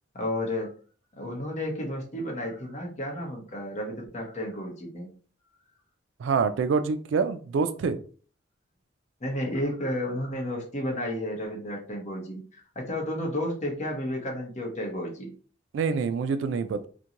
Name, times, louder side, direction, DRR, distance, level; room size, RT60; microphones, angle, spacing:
voice 1, 0.1-0.7 1.2-5.1 9.2-15.3, left 1 dB, 40° left, 0 dB, 0.8 m, -32 dB
voice 2, 6.2-8.0 15.7-16.9, right 5 dB, 75° right, 11 dB, 0.3 m, -26 dB
2.5 x 2.2 x 2.8 m, 0.40 s
head